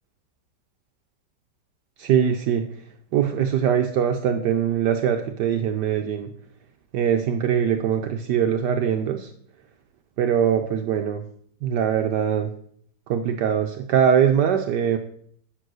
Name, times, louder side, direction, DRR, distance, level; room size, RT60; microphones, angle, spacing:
voice 1, 2.0-2.7 3.1-6.3 6.9-9.3 10.2-11.2 11.6-12.5 13.1-15.0, right 8 dB, 70° right, 6 dB, 1.3 m, -22 dB
10.5 x 6.1 x 6.3 m, 0.63 s
omnidirectional pair, 1.9 m